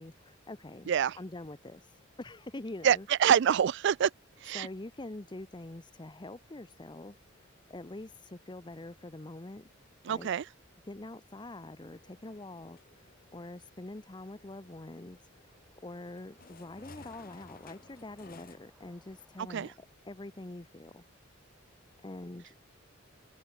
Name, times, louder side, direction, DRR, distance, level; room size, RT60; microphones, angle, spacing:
voice 1, 0.0-3.1 4.5-9.7 10.1-10.3 10.8-13.1 13.3-15.2 15.8-19.7 20.0-21.0 22.0-22.5, left 2 dB, 25° left, 0.8 m, -45 dB
voice 2, 0.9-1.2 2.8-4.1 4.4-4.7 10.0-10.5 19.5-19.7, right 8 dB, 60° right, 0.3 m, -26 dB
sound 1, 11.8-18.6, left 3 dB, 45° left, 3.0 m, -57 dB
sound 2, 13.3-19.4, equal, 5° right, 7.0 m, -68 dB
head